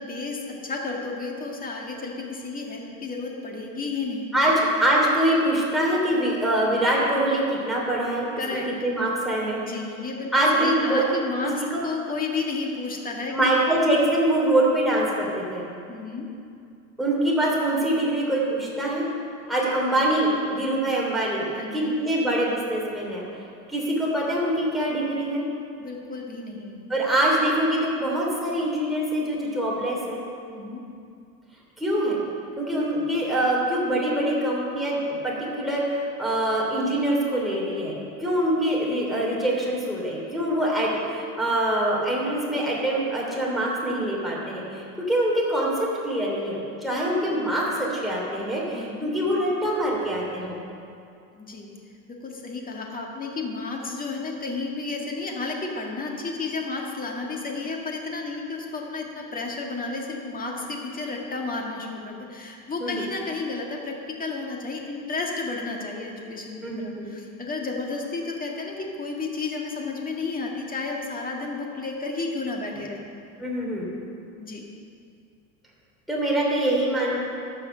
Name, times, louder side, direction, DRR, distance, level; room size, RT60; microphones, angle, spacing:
voice 1, 0.0-4.3 8.4-8.7 9.5-13.3 15.9-16.2 21.5-21.9 25.8-26.8 30.5-30.8 48.7-49.1 51.3-51.7 52.1-73.1 74.4-74.6, left 3 dB, 20° left, 0 dB, 1.7 m, -32 dB
voice 2, 4.8-8.3 8.8-9.6 10.3-11.0 11.7-11.8 13.3-15.7 17.0-19.1 19.5-21.5 21.7-23.2 23.7-25.4 26.9-30.2 31.8-32.2 32.6-50.6 62.8-63.0 66.6-67.1 73.4-73.9 76.1-77.2, right 1 dB, ahead, -5 dB, 3.0 m, -24 dB
13.5 x 5.7 x 6.6 m, 2.5 s
supercardioid pair, 125°, 41 cm